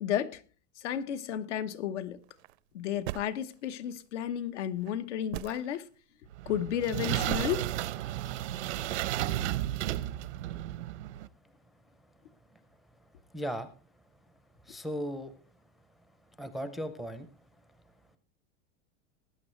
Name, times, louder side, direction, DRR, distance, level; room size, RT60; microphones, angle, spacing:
voice 1, 0.0-0.4 0.8-2.2 2.7-5.9 6.5-7.7, left 10 dB, 90° left, 1.3 m, -32 dB
sound 1, 2.2-2.6 3.1-3.9 4.8-4.9 5.3-5.8 6.6-6.9 7.3-7.5, right 16 dB, 65° right, 0.6 m, -38 dB
sound 2, 6.3-11.3, right 13 dB, 90° right, 0.9 m, -33 dB
voice 2, 13.3-13.7 14.7-15.3 16.4-17.3, equal, ahead, 0.4 m, -36 dB
19.5 x 9.1 x 3.2 m
supercardioid pair, 160°, 35 cm